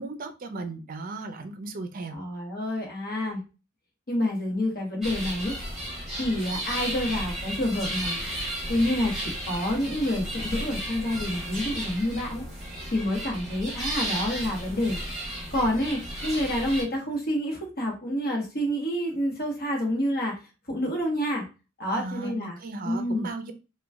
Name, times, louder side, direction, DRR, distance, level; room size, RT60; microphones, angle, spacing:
voice 1, 0.0-2.2 21.9-23.5, right 3 dB, 45° right, 6 dB, 0.5 m, -36 dB
voice 2, 2.1-3.4 4.1-5.5 6.2-8.2 8.7-12.4 12.9-15.0 15.5-20.4 20.7-21.5 21.8-22.6 22.8-23.3, left 1 dB, 50° left, 0 dB, 1.1 m, -28 dB
sound 1, 5.0-16.8, right 1 dB, ahead, 1.1 m, -34 dB
2.9 x 2.3 x 3.4 m, 0.31 s
head